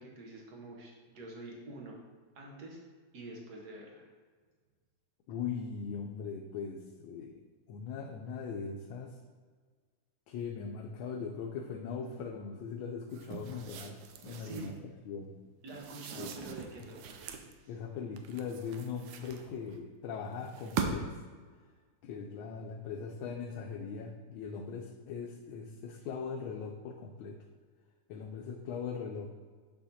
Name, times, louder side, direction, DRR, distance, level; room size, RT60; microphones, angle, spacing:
voice 1, 0.0-2.0 2.3-2.8 3.1-4.1 14.4-14.7 15.6-17.4, right 2 dB, 60° right, -1 dB, 1.6 m, -47 dB
voice 2, 5.3-7.4 7.7-9.2 10.3-14.0 14.2-14.7 15.0-15.3 16.1-16.4 17.7-21.2 22.0-27.4 28.1-29.3, left 6 dB, 85° left, 2 dB, 1.4 m, -40 dB
sound 1, 13.1-14.8 15.7-17.5 18.2-19.8 20.4-21.2, right 6 dB, 75° right, 1.3 m, -41 dB
6.8 x 5.6 x 2.7 m, 1.5 s
omnidirectional pair, 2.1 m